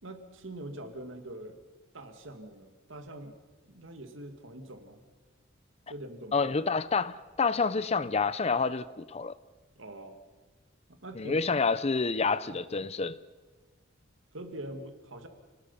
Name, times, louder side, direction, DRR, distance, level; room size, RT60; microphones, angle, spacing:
voice 1, 0.0-1.6 1.9-3.4 3.7-5.0 5.9-6.5 9.8-10.2 11.0-11.4 14.3-15.3, right 1 dB, 65° right, 6 dB, 2.3 m, -43 dB
voice 2, 6.3-9.3 11.2-13.2, left 4 dB, 30° left, 16 dB, 0.6 m, -28 dB
29.0 x 19.5 x 5.7 m, 1.3 s
head